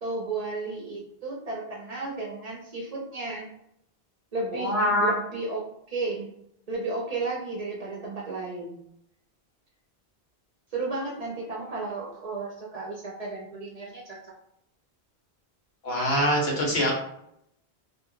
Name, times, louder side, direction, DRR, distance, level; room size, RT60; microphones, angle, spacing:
voice 1, 0.0-3.5 4.3-5.6 5.9-6.3 6.7-8.8 10.7-14.3, right 3 dB, 50° right, -3 dB, 0.5 m, -33 dB
voice 2, 4.6-5.1 15.8-17.0, equal, 85° left, -1 dB, 1.1 m, -24 dB
2.5 x 2.0 x 3.6 m, 0.75 s
omnidirectional pair, 1.1 m